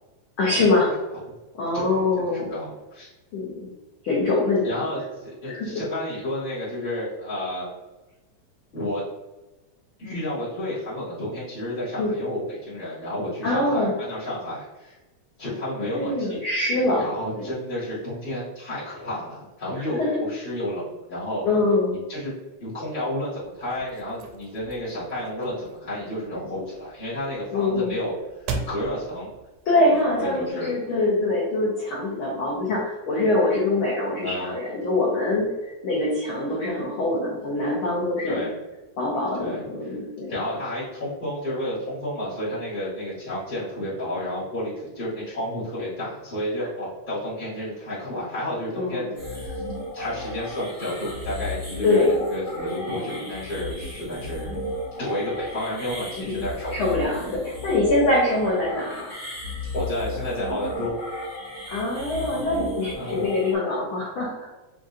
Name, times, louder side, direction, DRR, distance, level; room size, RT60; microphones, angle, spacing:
voice 1, 0.4-0.9 1.5-2.5 3.3-3.7 4.0-4.7 5.5-5.8 12.0-12.1 13.4-13.9 15.9-17.0 17.3-17.5 19.7-20.2 21.4-21.9 27.5-27.9 29.6-35.5 35.8-38.4 39.0-40.3 48.7-49.1 51.8-52.2 53.0-53.2 56.3-56.4 56.7-59.1 61.7-64.5, left 2 dB, 85° left, -5 dB, 1.1 m, -24 dB
voice 2, 1.7-3.1 4.6-7.7 8.7-9.0 10.0-14.9 15.4-16.4 16.9-20.8 21.1-21.5 21.9-22.3 22.6-28.1 28.5-29.3 30.2-30.7 34.2-34.5 38.2-38.5 39.3-39.7 40.3-49.6 49.9-54.5 55.0-56.8 59.7-60.9 62.9-63.3, left 1 dB, 45° left, -12 dB, 0.6 m, -31 dB
sound 1, 23.4-30.5, right 4 dB, 80° right, 1.6 m, -39 dB
sound 2, 49.2-63.6, left 1 dB, 45° right, 0.6 m, -34 dB
5.8 x 2.6 x 2.5 m, 1.1 s
omnidirectional pair, 3.6 m